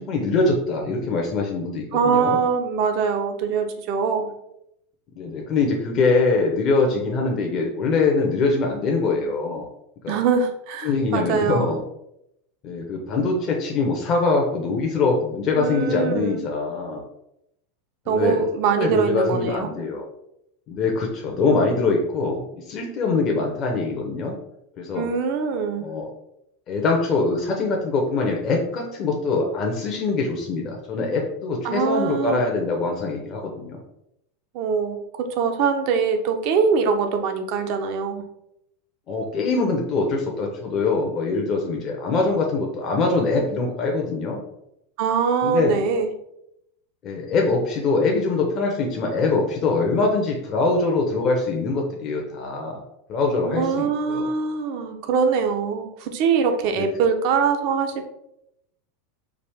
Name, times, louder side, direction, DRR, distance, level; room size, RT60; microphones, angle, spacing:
voice 1, 0.0-2.4 5.1-9.7 10.0-10.2 10.8-11.8 12.6-17.0 18.1-18.4 18.8-20.0 20.7-24.3 24.8-25.0 25.8-26.1 26.7-33.8 39.1-44.4 45.4-45.8 47.0-52.8 53.1-54.3 56.8-56.9, left 3 dB, 40° left, 0 dB, 0.8 m, -23 dB
voice 2, 1.9-4.3 10.1-11.7 15.5-16.4 18.1-19.7 25.0-25.9 31.6-32.4 34.5-38.2 45.0-46.1 53.5-58.1, right 6 dB, 50° right, 6 dB, 0.6 m, -23 dB
4.9 x 2.5 x 3.5 m, 0.81 s
figure-of-eight pair, 85°, 0 cm